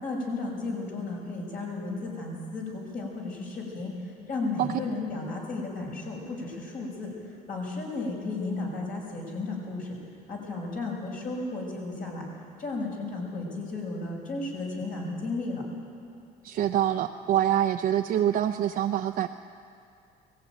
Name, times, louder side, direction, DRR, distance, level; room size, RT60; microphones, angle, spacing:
voice 1, 0.0-3.9 4.3-7.1 7.5-10.0 10.3-12.2 12.6-15.6, left 3 dB, 55° left, -1 dB, 6.1 m, -34 dB
voice 2, 16.4-19.3, right 11 dB, 60° right, 5 dB, 0.6 m, -25 dB
18.5 x 15.5 x 9.3 m, 2.4 s
cardioid pair, 110°, 17 cm